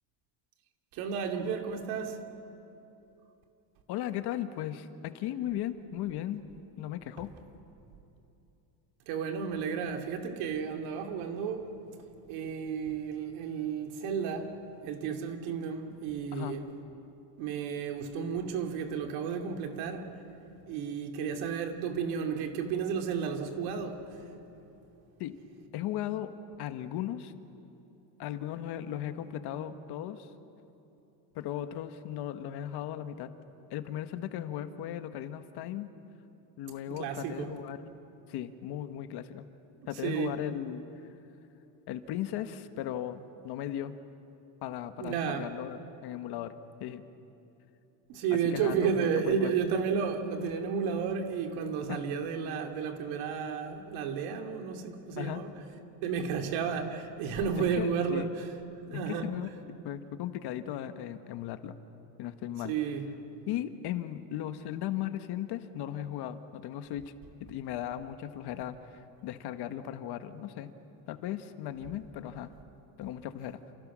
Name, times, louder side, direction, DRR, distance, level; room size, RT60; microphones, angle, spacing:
voice 1, 0.9-2.2 9.1-11.6 12.3-14.5 14.8-16.6 17.4-20.1 20.7-24.0 36.9-37.5 40.0-40.3 45.0-45.5 48.1-55.5 56.0-58.2 58.9-59.3 62.6-63.0, right 6 dB, 80° right, 2.9 m, -32 dB
voice 2, 3.9-6.4 6.8-7.3 16.3-16.6 25.2-25.4 25.7-26.3 26.6-27.3 28.2-30.3 31.3-33.3 33.7-35.9 36.6-37.8 38.3-39.5 39.9-41.1 41.9-43.9 44.6-46.5 46.8-47.0 48.3-49.6 51.9-52.0 55.2-55.4 57.5-58.3 58.9-59.5 59.8-61.7 62.2-62.8 63.5-67.1 67.4-70.7 71.1-72.5 73.0-73.6, left 11 dB, 55° left, 1.4 m, -37 dB
29.0 x 28.5 x 6.2 m
cardioid pair, 155°, 48 cm